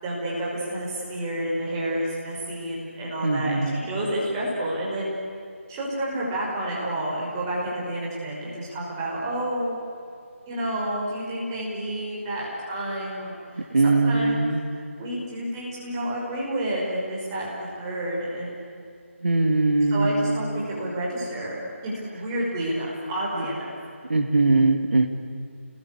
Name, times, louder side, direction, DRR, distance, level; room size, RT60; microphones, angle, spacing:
voice 1, 0.0-5.1 5.7-9.8 10.5-14.5 15.0-18.6 19.9-23.7, right 1 dB, 15° right, -5 dB, 5.8 m, -30 dB
voice 2, 3.2-3.8 13.7-14.6 19.2-20.4 24.1-25.1, right 2 dB, 55° right, 5 dB, 2.8 m, -21 dB
30.0 x 22.0 x 8.6 m, 2.4 s
figure-of-eight pair, 160°, 8 cm